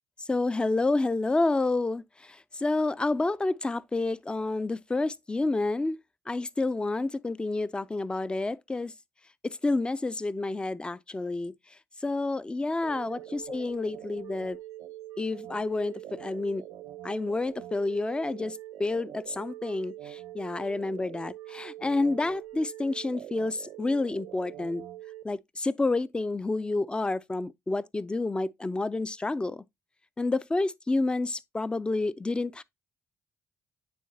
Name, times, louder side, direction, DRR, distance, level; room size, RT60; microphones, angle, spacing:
voice 1, 0.2-6.0 6.3-8.9 9.4-11.5 12.0-14.6 15.2-16.6 17.0-24.8 25.2-29.6 30.2-32.6, left 2 dB, 15° left, 0.3 m, -29 dB
sound 1, 12.8-25.2, right 13 dB, 80° right, 0.7 m, -44 dB
9.3 x 3.8 x 2.6 m
supercardioid pair, 65°, 6 cm